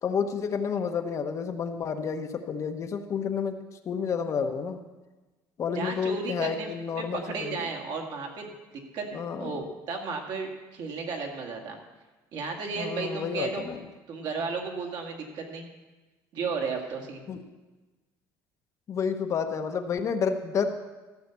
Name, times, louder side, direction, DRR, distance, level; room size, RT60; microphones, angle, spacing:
voice 1, 0.0-3.6 3.8-4.8 5.6-7.6 9.1-9.6 12.8-13.8 17.3-17.4 18.9-20.7, left 6 dB, 40° left, 7 dB, 0.9 m, -30 dB
voice 2, 5.7-8.5 8.9-11.8 12.3-13.7 14.1-15.7 16.3-17.3, right 4 dB, 60° right, 2 dB, 2.1 m, -34 dB
14.5 x 5.7 x 8.2 m, 1.2 s
cardioid pair, 140°, 8 cm